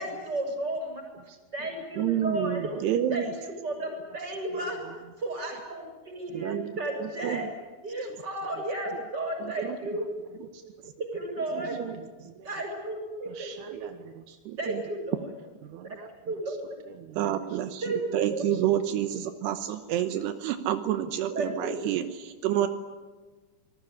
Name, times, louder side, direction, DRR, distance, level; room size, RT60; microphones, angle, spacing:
voice 1, 0.0-1.0 1.5-4.8 5.2-7.5 7.8-10.1 10.6-10.7 11.1-11.8 12.4-13.8 14.6-15.3 15.8-16.0 16.3-16.8 17.8-18.5 21.3-21.8, right 1 dB, 25° right, 3 dB, 7.1 m, -33 dB
voice 2, 1.1-1.8 2.6-2.9 3.3-3.5 3.8-5.0 7.2-7.5 8.1-8.2 8.5-8.6 9.5-10.1 10.5-10.6 11.6-11.8 12.2-12.5 13.3-14.4 15.6-16.6 16.9-17.6 17.8-18.0 18.5-18.6, right 10 dB, 65° right, 7 dB, 2.1 m, -46 dB
voice 3, 2.0-3.3 6.3-7.4 9.4-9.8 10.4-10.5 10.8-10.9 11.5-12.0 14.5-14.8 17.2-22.7, right 11 dB, 80° right, 8 dB, 3.1 m, -29 dB
26.0 x 21.0 x 9.9 m, 1.3 s
omnidirectional pair, 4.9 m